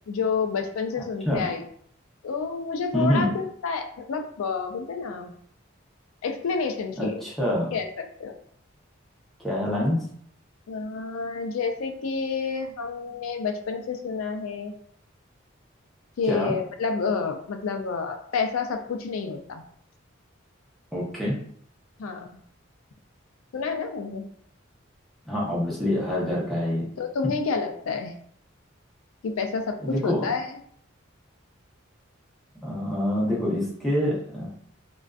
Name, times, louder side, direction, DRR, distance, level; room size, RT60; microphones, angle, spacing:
voice 1, 0.1-1.6 2.2-5.3 6.2-7.1 7.7-7.9 8.2-8.4 10.7-14.7 16.2-19.6 22.0-22.4 23.5-24.3 27.0-28.1 29.2-30.5, left 5 dB, 90° left, 5 dB, 0.4 m, -29 dB
voice 2, 2.9-3.3 7.0-7.7 9.4-10.0 16.3-16.5 20.9-21.4 25.3-26.9 29.8-30.3 32.6-34.5, equal, ahead, -6 dB, 0.6 m, -26 dB
2.5 x 2.2 x 2.3 m, 0.63 s
head